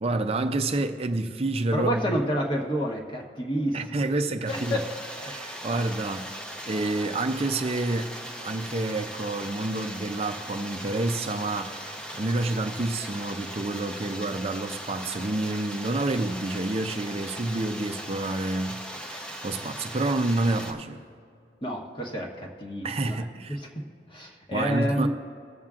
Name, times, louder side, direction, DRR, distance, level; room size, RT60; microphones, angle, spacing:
voice 1, 0.0-2.2 3.7-4.8 5.3-6.3 6.7-8.1 8.4-11.8 12.1-18.8 19.1-21.0 22.8-23.6 24.5-25.1, right 2 dB, 35° right, 0.5 m, -28 dB
voice 2, 1.7-3.8 4.5-4.9 5.5-5.6 21.6-23.8 24.1-25.1, equal, 25° left, 1.1 m, -29 dB
sound 1, 4.5-20.7, equal, 5° left, 0.7 m, -39 dB
21.0 x 7.3 x 2.4 m
head